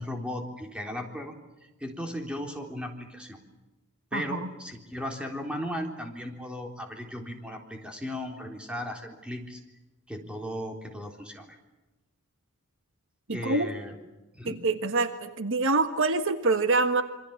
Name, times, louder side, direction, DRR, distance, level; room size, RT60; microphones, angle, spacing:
voice 1, 0.0-1.3 1.8-3.4 4.1-9.6 10.1-11.6 13.3-13.9 14.3-14.6, equal, 5° right, 2 dB, 3.7 m, -36 dB
voice 2, 13.3-13.7 14.4-17.0, right 3 dB, 60° right, 8 dB, 1.4 m, -25 dB
27.0 x 25.0 x 7.2 m, 1.1 s
head